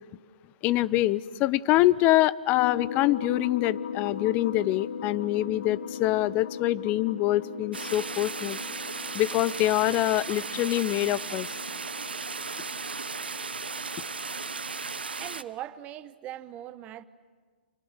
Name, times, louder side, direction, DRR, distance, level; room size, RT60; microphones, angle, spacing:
voice 1, 0.6-8.6 9.1-11.5, left 16 dB, 30° left, 0.7 m, -25 dB
sound 1, 2.6-15.0, left 8 dB, 60° left, 1.2 m, -39 dB
sound 2, 7.7-15.4, right 4 dB, 90° right, 1.0 m, -36 dB
voice 2, 15.2-17.1, right 12 dB, 25° right, 1.0 m, -40 dB
29.0 x 27.5 x 6.5 m
hypercardioid pair, 125°, 5 cm